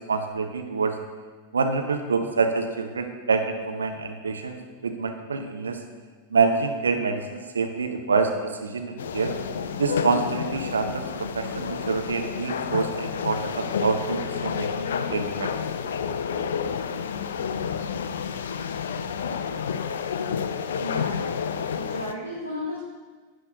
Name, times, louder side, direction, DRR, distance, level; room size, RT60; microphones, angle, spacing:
voice 1, 0.1-0.9 1.5-4.5 4.8-5.8 6.3-8.3 8.6-9.3 9.8-11.1 11.3-15.5, right 4 dB, 70° right, 5 dB, 0.7 m, -26 dB
sound 1, 9.0-22.1, left 6 dB, 60° left, 0.4 m, -30 dB
voice 2, 20.8-21.3 21.7-22.8, left 1 dB, 90° right, -4 dB, 1.0 m, -34 dB
11.0 x 8.0 x 2.5 m, 1.4 s
figure-of-eight pair, 90°, 0 cm